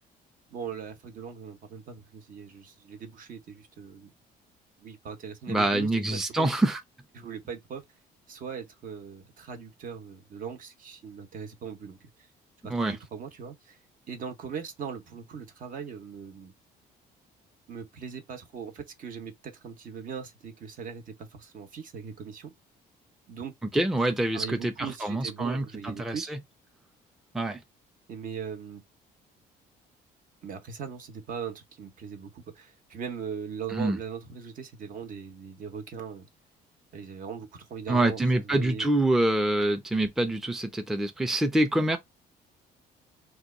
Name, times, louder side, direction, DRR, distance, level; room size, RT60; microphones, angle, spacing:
voice 1, 0.5-4.1 4.8-6.5 7.1-7.8 8.3-12.1 12.6-13.8 14.1-16.5 17.7-22.5 23.3-23.5 24.3-26.3 28.1-28.8 30.4-36.3 36.9-38.9, right 6 dB, 55° right, 0.8 m, -40 dB
voice 2, 5.5-6.8 12.7-13.0 23.7-26.4 27.3-27.6 33.7-34.0 37.9-42.0, right 1 dB, ahead, 0.4 m, -26 dB
2.9 x 2.3 x 3.6 m
cardioid pair, 110°, 17 cm